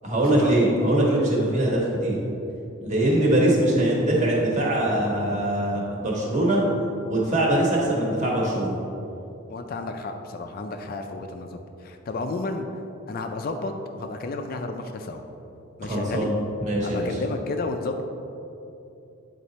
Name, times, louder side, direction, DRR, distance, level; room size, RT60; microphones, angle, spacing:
voice 1, 0.0-2.2 2.8-6.6 7.1-8.8 15.8-16.3 16.6-17.1, right 1 dB, 35° right, -4 dB, 1.4 m, -22 dB
voice 2, 9.5-12.7 13.1-15.3 15.8-16.3 16.8-18.0, left 3 dB, 45° left, 5 dB, 0.4 m, -32 dB
8.6 x 4.0 x 4.1 m, 2.8 s
head